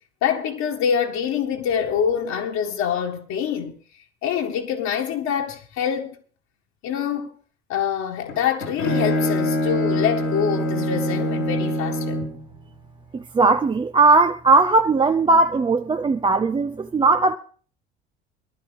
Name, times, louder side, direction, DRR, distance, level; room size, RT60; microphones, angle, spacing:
voice 1, 0.2-3.8 4.2-6.2 6.8-7.3 7.7-12.2, left 8 dB, 55° left, 1.9 m, -25 dB
Bowed string instrument, 8.3-12.4, left 1 dB, 85° left, 3.4 m, -24 dB
voice 2, 13.1-17.4, right 3 dB, 15° right, 0.5 m, -18 dB
19.0 x 11.5 x 3.4 m
figure-of-eight pair, 60°, 34 cm